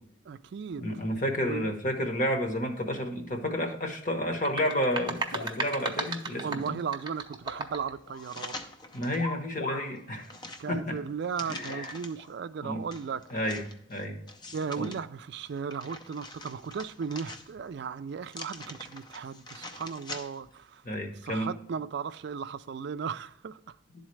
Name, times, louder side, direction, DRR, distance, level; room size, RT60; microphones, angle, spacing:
voice 1, 0.3-0.9 1.5-1.8 6.4-8.5 10.6-13.2 14.5-20.8 21.2-23.8, right 6 dB, 60° right, 0.3 m, -36 dB
voice 2, 0.8-6.8 8.9-10.3 10.7-11.0 11.5-11.9 12.6-12.8 13.3-13.6 13.9-14.2 14.8-14.9 20.8-21.5, equal, 40° left, 1.1 m, -31 dB
sound 1, 4.3-7.9, right 3 dB, 20° right, 0.6 m, -35 dB
sound 2, 5.2-6.2 6.6-7.7 8.0-8.4 9.1-10.0 10.3-10.4 11.5-12.3 13.2-13.3 14.2-14.4, left 2 dB, 75° left, 1.3 m, -41 dB
sound 3, 8.2-9.3 9.7-12.3 12.9-15.0 15.5-17.8 18.2-20.6 20.9-21.0, left 2 dB, 20° left, 0.5 m, -45 dB
11.0 x 4.0 x 3.1 m
head